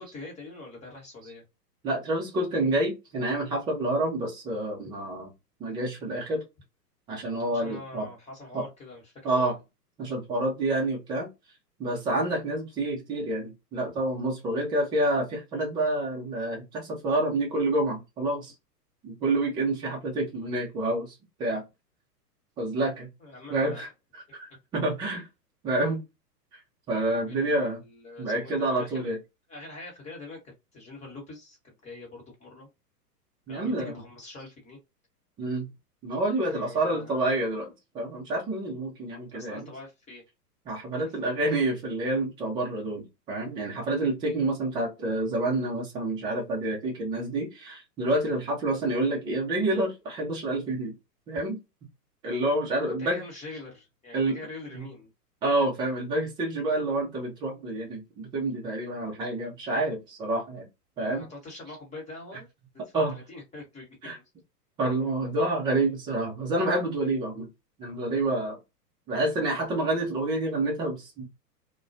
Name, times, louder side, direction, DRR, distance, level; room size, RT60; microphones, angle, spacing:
voice 1, 0.0-1.4 7.5-9.5 23.2-23.8 27.2-29.1 29.5-32.7 33.5-34.8 36.4-37.3 39.3-40.2 41.0-41.3 52.9-55.1 61.0-62.5 62.7-64.2, left 2 dB, 15° left, 1.1 m, -44 dB
voice 2, 1.8-5.3 5.6-6.4 7.1-8.1 8.5-8.7 9.2-9.6 10.0-11.3 11.8-18.5 19.0-21.1 21.4-21.6 22.6-23.1 23.5-25.3 25.6-26.0 26.9-27.8 28.2-29.2 33.5-34.0 35.4-35.7 36.0-39.7 40.7-50.9 51.3-51.6 52.2-53.2 54.1-54.4 54.8-54.9 55.4-60.7 61.0-61.3 62.9-63.1 64.0-64.2 64.8-67.5 67.8-68.6 69.1-71.3, right 2 dB, 10° right, 0.4 m, -28 dB
2.2 x 2.1 x 2.6 m
hypercardioid pair, 115°, 48 cm